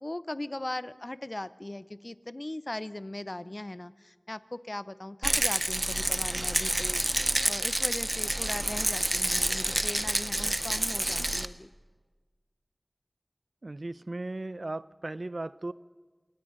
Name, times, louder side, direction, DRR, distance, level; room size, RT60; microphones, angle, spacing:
voice 1, 0.0-7.0 7.5-11.7, left 1 dB, 45° left, 15 dB, 0.7 m, -39 dB
Rattle, 5.2-11.5, right 1 dB, 35° right, 0.9 m, -28 dB
voice 2, 13.6-15.7, right 2 dB, 75° right, 16 dB, 0.6 m, -36 dB
29.0 x 18.0 x 5.3 m, 1.4 s
wide cardioid pair, 45°, 0 cm